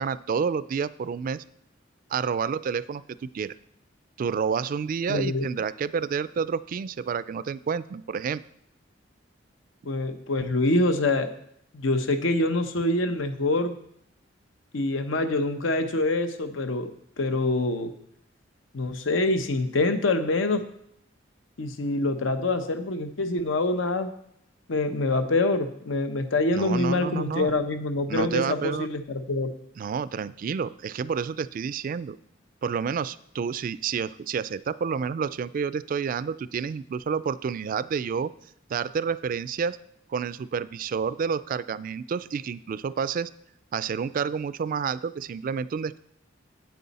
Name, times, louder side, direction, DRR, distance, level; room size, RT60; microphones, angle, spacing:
voice 1, 0.0-1.4 2.1-3.5 4.2-8.4 26.5-27.5 28.1-28.9 29.8-32.2 32.6-38.3 38.7-39.8 40.1-43.3 43.7-46.0, right 6 dB, 45° right, 17 dB, 0.3 m, -29 dB
voice 2, 5.1-5.4 9.8-11.3 11.7-13.7 14.7-16.9 17.2-17.9 18.7-20.6 21.6-24.1 24.7-29.5, left 2 dB, 85° left, 9 dB, 0.8 m, -25 dB
9.4 x 8.1 x 4.1 m, 0.71 s
head